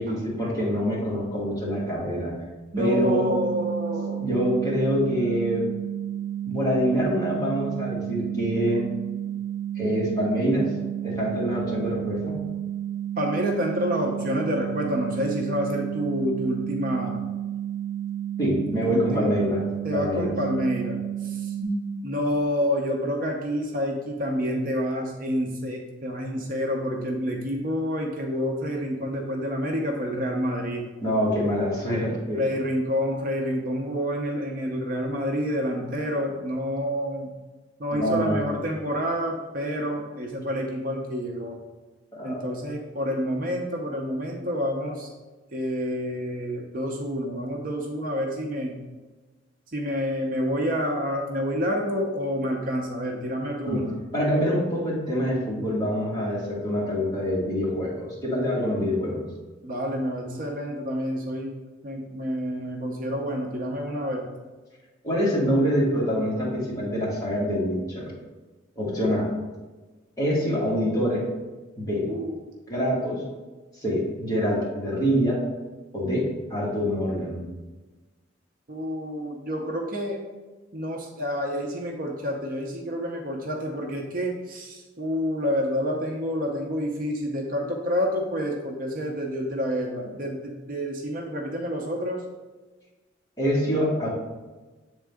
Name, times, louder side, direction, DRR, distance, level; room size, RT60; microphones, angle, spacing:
voice 1, 0.0-2.3 2.8-3.3 4.2-5.7 6.5-8.8 9.7-10.7 11.0-12.4 18.4-19.6 19.9-20.3 31.0-32.4 37.9-38.5 42.1-42.5 53.7-53.9 54.1-59.2 65.0-68.1 68.7-69.3 70.2-71.2 71.8-72.1 72.7-73.2 73.7-75.4 75.9-77.4 90.0-90.1 93.4-94.1, equal, 20° left, -6 dB, 1.7 m, -25 dB
sound 1, 2.7-21.6, right 10 dB, 30° right, 1.0 m, -31 dB
voice 2, 2.7-4.2 13.2-17.2 18.8-19.3 19.8-21.0 21.3-21.4 22.0-30.8 32.3-37.3 37.8-41.6 42.2-45.1 45.5-48.7 49.7-53.9 59.6-61.5 61.8-64.3 72.0-72.5 78.7-80.2 80.7-92.2, equal, 45° right, 1 dB, 0.7 m, -28 dB
7.3 x 3.7 x 3.5 m, 1.2 s
head